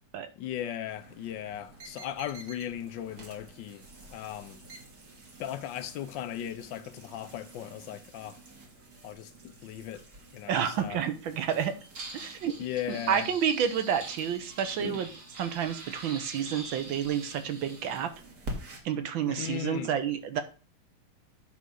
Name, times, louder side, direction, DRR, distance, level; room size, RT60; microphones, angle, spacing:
voice 1, 0.4-3.8 4.1-4.6 5.4-8.4 9.0-10.0 10.3-11.0 12.6-13.3 14.8-15.0 19.3-19.9, left 11 dB, 70° left, 1.3 m, -37 dB
sound 1, 0.9-18.8, right 2 dB, 45° right, 2.3 m, -46 dB
voice 2, 10.5-11.7 12.1-12.5 12.9-15.1 15.4-18.1 18.8-20.4, right 8 dB, 70° right, 1.6 m, -30 dB
9.6 x 3.7 x 6.3 m
omnidirectional pair, 2.3 m